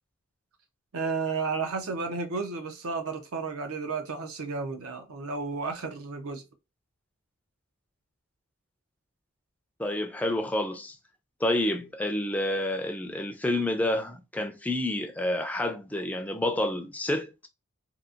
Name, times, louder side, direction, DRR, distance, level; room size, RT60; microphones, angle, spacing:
voice 1, 0.9-6.4, right 4 dB, 70° right, 0.6 m, -32 dB
voice 2, 9.8-11.0 11.4-17.5, left 1 dB, 5° left, 0.4 m, -29 dB
2.7 x 2.4 x 2.4 m
head